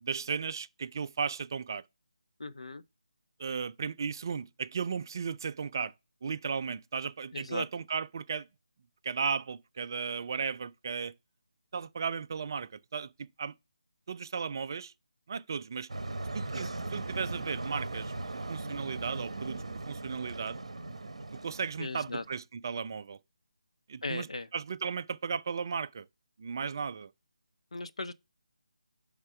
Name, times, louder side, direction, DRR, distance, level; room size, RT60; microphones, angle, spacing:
voice 1, 0.0-1.8 3.4-5.9 6.2-8.5 9.0-11.1 11.7-13.1 13.4-13.5 14.1-14.9 15.3-15.9 16.3-20.6 21.4-23.2 23.9-24.3 24.5-26.0 26.4-27.1, right 6 dB, 35° right, 0.3 m, -35 dB
voice 2, 2.4-2.8 7.3-7.7 21.8-22.2 24.0-24.5 27.7-28.1, left 3 dB, 60° left, 0.6 m, -37 dB
sound 1, 15.9-22.4, right 2 dB, 55° right, 0.8 m, -39 dB
8.7 x 3.6 x 4.6 m
figure-of-eight pair, 155°, 4 cm